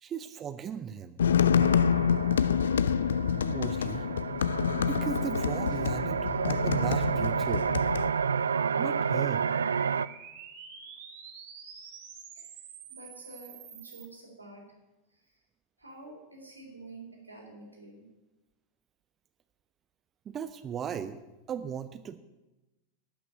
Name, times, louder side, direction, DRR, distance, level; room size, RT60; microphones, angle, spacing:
voice 1, 0.0-1.2 3.4-4.0 4.8-7.7 8.8-9.4 20.3-21.2 21.5-22.2, right 8 dB, 25° right, 10 dB, 0.6 m, -37 dB
sound 1, 1.2-8.1, left 7 dB, 65° left, 0.3 m, -27 dB
sound 2, 1.6-10.1, right 6 dB, 70° right, 0.3 m, -31 dB
sound 3, 2.7-14.1, right 7 dB, 50° right, 2.0 m, -47 dB
voice 2, 11.7-12.0 12.3-12.6 12.9-13.5 13.8-14.6 15.1-15.4 15.8-18.1, right 2 dB, 85° right, -2 dB, 3.8 m, -49 dB
12.0 x 6.1 x 9.4 m, 1.0 s
figure-of-eight pair, 90°, 0 cm